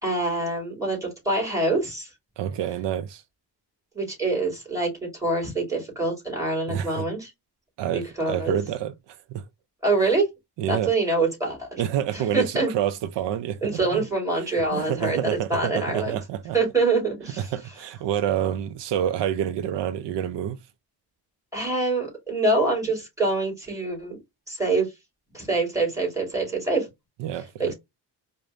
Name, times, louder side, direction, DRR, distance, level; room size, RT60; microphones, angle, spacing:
voice 1, 0.0-2.1 3.9-7.3 7.9-8.6 9.8-10.3 10.7-11.8 12.1-12.7 13.6-15.2 15.5-16.2 16.5-17.5 21.5-24.2 24.5-24.9 25.3-26.9 27.6-27.7, right 3 dB, 10° right, 2.5 m, -25 dB
voice 2, 2.4-3.2 6.7-7.1 7.8-8.9 9.3-9.4 10.6-10.9 11.8-14.0 14.4-16.6 17.4-20.6 27.2-27.7, right 10 dB, 80° right, 0.5 m, -28 dB
4.9 x 2.1 x 2.5 m
wide cardioid pair, 115°, 42 cm